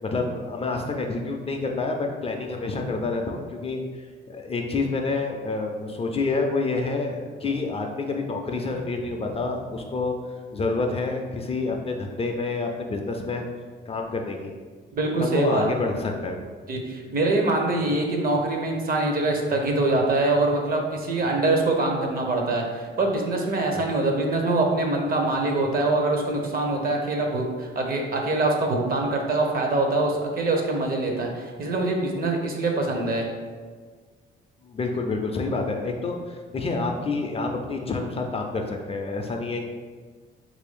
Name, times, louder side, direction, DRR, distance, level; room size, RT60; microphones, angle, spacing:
voice 1, 0.0-3.8 4.3-13.4 13.9-14.5 15.2-16.4 23.8-23.9 34.6-39.6, left 3 dB, 30° left, 3 dB, 0.4 m, -28 dB
voice 2, 14.9-15.7 16.7-33.3, right 2 dB, 45° right, 2 dB, 0.7 m, -24 dB
3.1 x 2.6 x 3.5 m, 1.5 s
cardioid pair, 90°, 20 cm